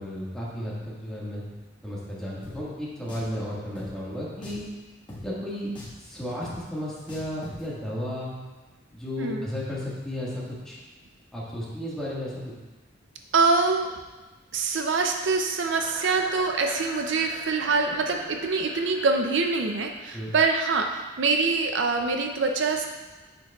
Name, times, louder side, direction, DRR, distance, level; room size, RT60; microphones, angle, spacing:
voice 1, 0.0-1.4 1.8-4.7 5.2-8.3 8.9-10.8 11.3-12.5 20.1-20.3, left 1 dB, 5° left, -8 dB, 1.7 m, -33 dB
Drum, 2.4-2.6 3.1-3.3 3.8-3.9 4.4-4.7 5.1-5.2 5.8-6.0 6.4-6.6 7.1-7.6, left 1 dB, 25° left, 1.5 m, -40 dB
voice 2, 13.3-14.0 14.5-22.9, right 4 dB, 70° right, 4 dB, 0.5 m, -25 dB
sound 1, 15.7-20.7, equal, 60° left, 2.3 m, -42 dB
8.4 x 6.6 x 2.4 m, 1.2 s
head